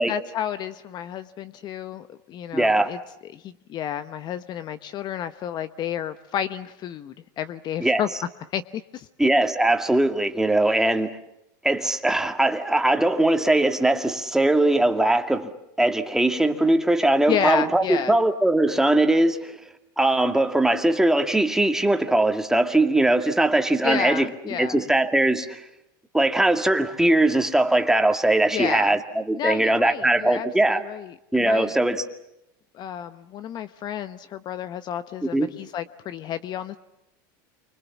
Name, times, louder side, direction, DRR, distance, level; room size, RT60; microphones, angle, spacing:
voice 1, 0.1-3.0 3.3-8.1 8.5-9.1 17.3-18.2 23.8-24.8 28.5-29.0 29.3-31.7 32.7-36.8, left 10 dB, 40° left, 1.0 m, -31 dB
voice 2, 2.5-2.9 7.8-8.0 9.2-11.1 11.6-15.5 15.8-19.6 20.0-25.6 26.1-30.8 31.3-32.0 35.3-35.5, right 1 dB, 5° right, 2.1 m, -20 dB
29.0 x 25.0 x 7.2 m
supercardioid pair, 115°, 11 cm